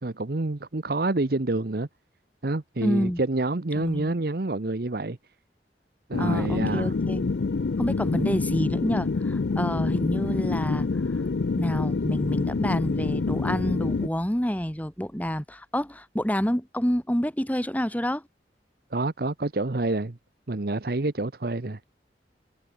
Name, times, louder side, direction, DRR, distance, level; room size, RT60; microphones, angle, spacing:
voice 1, 0.0-1.9 2.4-5.2 6.1-6.9 8.2-8.3 18.9-20.2 20.5-21.8, right 2 dB, 55° right, 0.9 m, -28 dB
voice 2, 2.8-3.2 3.8-4.2 6.2-7.2 7.8-10.9 11.6-18.2, equal, 10° left, 2.2 m, -28 dB
sound 1, 6.1-14.1, left 4 dB, 75° left, 0.5 m, -27 dB
head